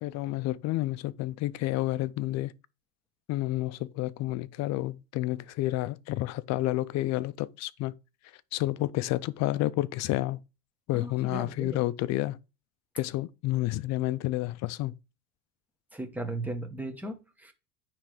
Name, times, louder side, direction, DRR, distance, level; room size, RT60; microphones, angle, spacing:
voice 1, 0.0-2.5 3.3-7.9 8.5-10.4 10.9-12.4 12.9-14.9, left 16 dB, 45° left, 0.5 m, -30 dB
voice 2, 10.9-11.8 15.9-17.5, right 2 dB, 5° right, 1.1 m, -37 dB
9.8 x 3.3 x 4.9 m
supercardioid pair, 125°, 39 cm